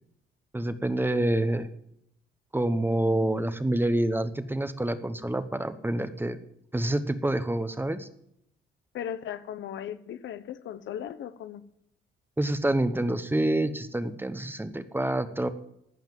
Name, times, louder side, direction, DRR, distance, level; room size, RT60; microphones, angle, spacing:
voice 1, 0.5-1.7 2.5-6.4 6.7-8.1 12.4-15.5, right 1 dB, 10° right, 11 dB, 0.9 m, -27 dB
voice 2, 8.9-11.6, left 9 dB, 70° left, 12 dB, 0.9 m, -37 dB
15.0 x 5.7 x 7.6 m, 0.75 s
cardioid pair, 90°, 20 cm